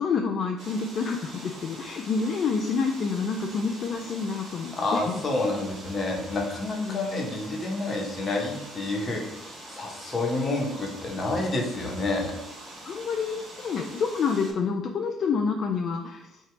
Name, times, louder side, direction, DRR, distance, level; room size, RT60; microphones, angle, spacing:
voice 1, 0.0-5.2 6.8-7.3 12.9-16.4, left 5 dB, 55° left, 3 dB, 0.3 m, -28 dB
sound 1, 0.6-14.5, right 1 dB, 50° right, 1.5 m, -44 dB
voice 2, 4.7-12.3, left 2 dB, 35° left, 0 dB, 1.0 m, -29 dB
2.9 x 2.8 x 4.4 m, 0.89 s
supercardioid pair, 85°, 0 cm